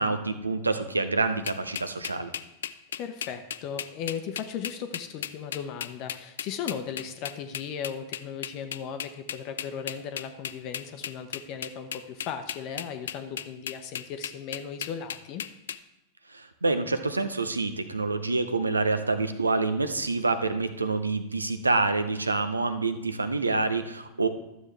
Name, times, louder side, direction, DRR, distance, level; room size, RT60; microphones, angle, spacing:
voice 1, 0.0-2.3 16.3-24.3, right 3 dB, 80° right, 10 dB, 0.7 m, -27 dB
sound 1, 1.5-15.8, left 9 dB, 65° left, 0.4 m, -35 dB
voice 2, 3.0-15.4, left 7 dB, 40° left, 7 dB, 0.7 m, -37 dB
12.5 x 7.3 x 3.3 m, 0.92 s
figure-of-eight pair, 90°, 0 cm